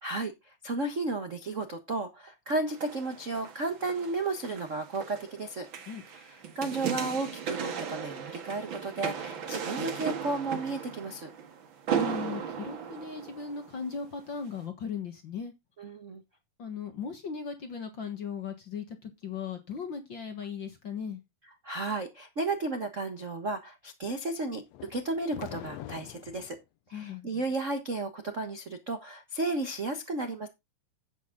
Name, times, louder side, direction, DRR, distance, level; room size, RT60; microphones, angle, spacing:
voice 1, 0.0-5.7 6.1-11.3 15.8-16.2 21.6-24.6 24.9-26.6 26.9-30.5, right 2 dB, 75° right, 0.6 m, -33 dB
sound 1, 2.7-13.9 14.5-14.6, right 7 dB, 45° right, 1.9 m, -36 dB
voice 2, 11.9-15.5 16.6-21.2 26.9-27.4, left 6 dB, 50° left, 1.6 m, -38 dB
sound 2, 24.7-26.6, left 13 dB, 80° left, 1.5 m, -43 dB
10.0 x 8.6 x 3.8 m
omnidirectional pair, 3.8 m